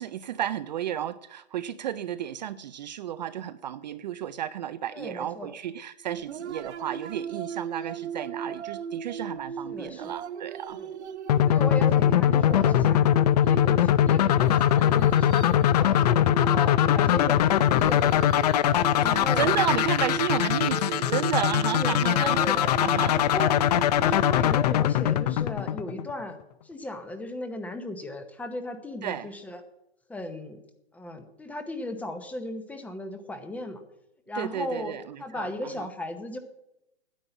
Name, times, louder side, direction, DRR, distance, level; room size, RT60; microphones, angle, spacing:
voice 1, 0.0-10.8 19.0-22.4 22.8-23.2 29.0-29.3 34.4-35.5 35.8-35.9, right 10 dB, 40° right, 0.4 m, -32 dB
voice 2, 4.9-5.5 9.7-10.1 10.7-10.9 11.4-13.1 13.4-16.0 16.4-18.3 19.0-19.5 21.7-22.7 23.1-23.6 23.9-26.4 26.6-29.6 30.1-30.6 30.9-33.8 34.3-36.4, left 1 dB, 5° left, 0.8 m, -36 dB
sound 1, 6.1-25.6, right 7 dB, 80° right, 0.9 m, -37 dB
sound 2, 11.3-26.2, left 11 dB, 40° left, 0.5 m, -22 dB
10.0 x 9.3 x 8.0 m
hypercardioid pair, 145°, 33 cm